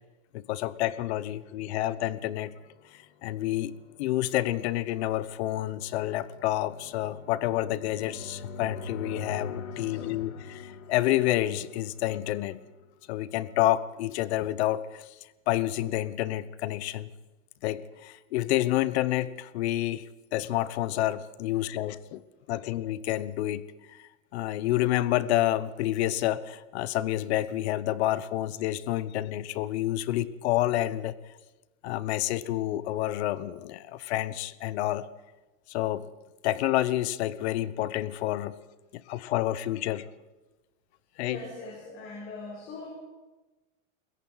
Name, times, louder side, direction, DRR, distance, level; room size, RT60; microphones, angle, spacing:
voice 1, 0.3-2.5 3.2-3.7 4.0-12.6 13.1-15.1 15.5-17.1 17.6-20.0 20.3-22.2 22.5-23.6 24.0-31.1 31.8-35.1 35.7-36.1 36.4-38.6 38.9-40.0 41.2-41.4, left 14 dB, 55° left, 16 dB, 1.0 m, -29 dB
sound 1, 2.2-13.0, left 4 dB, 85° left, 2.9 m, -45 dB
voice 2, 9.7-10.0 41.2-42.9, left 3 dB, 30° left, -2 dB, 6.2 m, -42 dB
29.5 x 21.5 x 4.1 m, 1.1 s
supercardioid pair, 160°, 39 cm